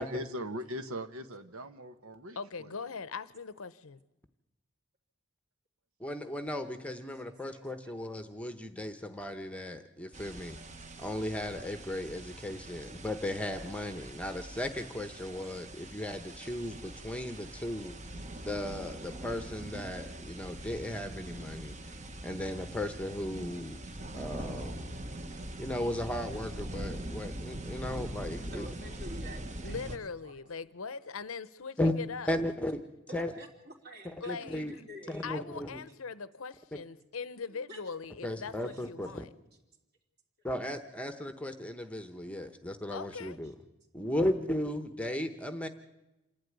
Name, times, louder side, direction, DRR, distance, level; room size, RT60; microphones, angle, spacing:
voice 1, 0.0-2.7, equal, 80° right, 1.2 m, -40 dB
voice 2, 2.4-4.0 29.6-32.3 34.2-34.8 35.2-39.3 42.9-43.4, left 5 dB, 75° left, 0.8 m, -41 dB
voice 3, 6.0-10.6 11.0-17.9 18.4-21.7 22.2-23.8 24.1-24.9 25.6-28.7 31.8-31.9 32.3-32.8 33.1-33.3 34.3-34.8 35.1-35.8 38.2-39.2 40.4-43.5 43.9-45.7, left 1 dB, 5° left, 0.9 m, -36 dB
sound 1, 10.1-30.0, right 1 dB, 35° right, 1.1 m, -42 dB
voice 4, 28.5-30.0 30.2-30.4 33.1-35.3 37.5-37.8 38.7-38.8, right 1 dB, 50° right, 3.3 m, -49 dB
27.0 x 11.5 x 9.4 m
head